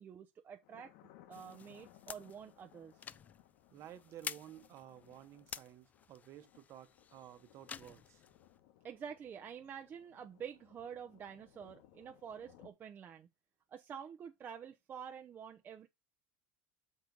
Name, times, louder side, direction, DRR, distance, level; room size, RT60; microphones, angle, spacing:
voice 1, 0.0-2.9 8.8-13.3 13.7-15.9, right 7 dB, 30° right, 0.7 m, -48 dB
Thunder, 0.6-12.7, left 12 dB, 70° left, 1.2 m, -64 dB
sound 1, 1.3-8.6, left 7 dB, 25° left, 0.4 m, -51 dB
voice 2, 3.7-8.2, right 11 dB, 45° right, 1.1 m, -54 dB
6.6 x 4.6 x 5.2 m
supercardioid pair, 120°, 6 cm